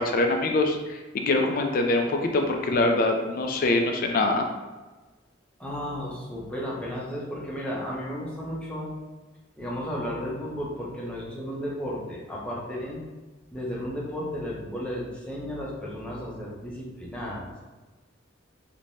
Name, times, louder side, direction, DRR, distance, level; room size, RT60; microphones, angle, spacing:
voice 1, 0.0-4.5, left 2 dB, 45° left, 4 dB, 0.3 m, -24 dB
voice 2, 5.6-8.9 9.6-13.0 13.5-17.5, equal, 5° left, -6 dB, 0.6 m, -33 dB
3.2 x 2.1 x 2.6 m, 1.2 s
head